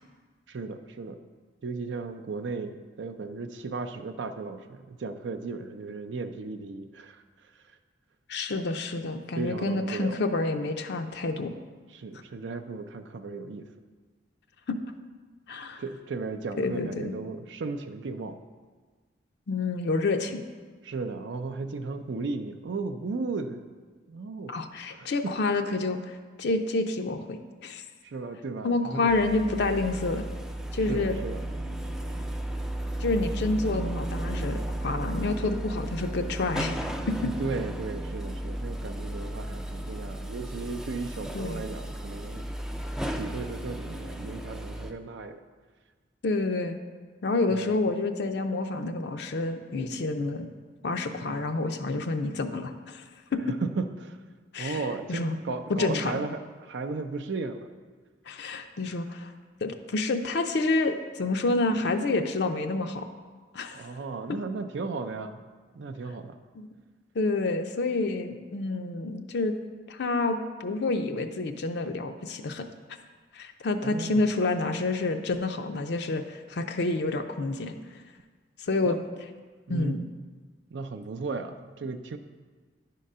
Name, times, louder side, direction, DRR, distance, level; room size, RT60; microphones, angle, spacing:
voice 1, 0.5-1.2 1.6-7.6 9.4-10.2 11.9-13.7 15.8-18.4 20.8-23.6 24.1-24.5 24.9-25.3 28.0-29.1 30.9-31.4 37.2-42.5 43.2-45.4 47.5-47.7 53.5-54.2 54.6-57.7 63.7-65.4 65.7-66.4 73.8-74.2 78.8-79.0 79.7-80.1 80.7-82.2, right 3 dB, 70° right, 7 dB, 0.5 m, -35 dB
voice 2, 8.3-11.5 14.7-14.8 15.5-15.8 16.5-17.1 19.5-20.4 24.5-27.8 28.6-30.2 30.7-31.2 33.0-37.3 41.3-41.6 46.2-46.8 47.2-50.5 50.8-53.0 53.3-53.5 54.5-54.8 55.1-55.4 55.8-56.1 58.3-59.3 59.6-63.1 63.5-63.9 66.6-66.7 67.1-69.6 69.9-72.7 73.3-77.7 78.6-79.0 79.7-80.1, left 3 dB, 60° left, 6 dB, 0.5 m, -28 dB
sound 1, 29.1-44.9, right 1 dB, 5° right, 0.3 m, -34 dB
10.0 x 3.8 x 5.4 m, 1.4 s
head